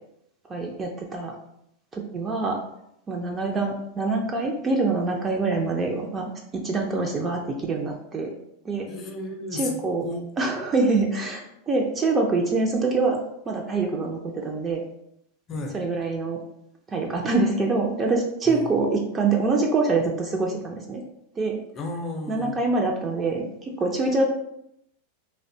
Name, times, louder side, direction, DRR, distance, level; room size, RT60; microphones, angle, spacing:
voice 1, 0.5-1.3 1.9-2.6 3.1-6.3 6.6-8.3 8.6-8.9 9.5-10.0 10.4-13.2 13.5-14.8 15.7-16.4 16.9-21.0 21.4-21.6 22.3-24.3, right 3 dB, 25° right, 1 dB, 0.3 m, -25 dB
voice 2, 8.9-9.8 10.0-10.2 15.5-15.8 18.5-18.7 21.7-22.7, left 2 dB, 35° left, 3 dB, 0.5 m, -33 dB
2.6 x 2.1 x 2.6 m, 0.77 s
hypercardioid pair, 110°, 0 cm